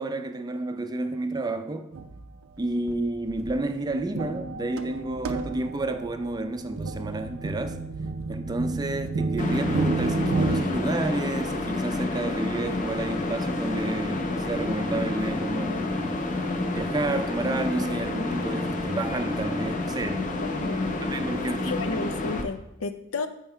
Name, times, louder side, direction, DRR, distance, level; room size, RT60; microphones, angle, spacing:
voice 1, 0.0-1.9 2.6-7.8 8.3-15.9 16.7-20.3 21.0-21.8, right 2 dB, 20° right, 0.4 m, -30 dB
sound 1, 1.9-2.3 2.9-3.0 3.3-10.6, right 3 dB, 70° right, 0.5 m, -31 dB
sound 2, 9.4-22.4, left 2 dB, 40° left, 0.7 m, -29 dB
voice 2, 20.4-20.9 21.6-23.3, left 4 dB, 85° left, 0.6 m, -32 dB
7.5 x 4.6 x 4.5 m
head